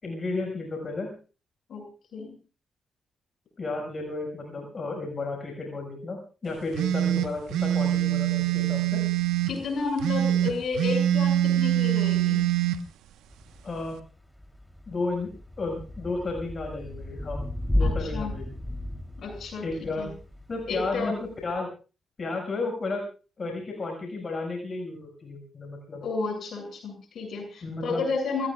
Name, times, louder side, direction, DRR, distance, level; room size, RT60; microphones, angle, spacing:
voice 1, 0.0-1.1 3.6-9.0 13.6-14.0 14.9-17.4 17.7-18.5 19.6-20.1 20.5-21.1 21.4-21.7 22.2-23.0 23.4-26.0 27.6-28.0, left 3 dB, 45° left, 2 dB, 6.2 m, -33 dB
sound 1, 6.7-9.5 10.0-12.8, right 12 dB, 80° right, 1.3 m, -24 dB
voice 2, 9.5-12.4 17.8-18.3 19.2-20.1 20.7-21.2 26.0-28.5, left 4 dB, 65° left, 3 dB, 7.2 m, -32 dB
Thunder / Rain, 13.3-21.6, left 1 dB, 5° left, 3.5 m, -34 dB
29.0 x 18.0 x 2.5 m, 0.36 s
hypercardioid pair, 40°, 0 cm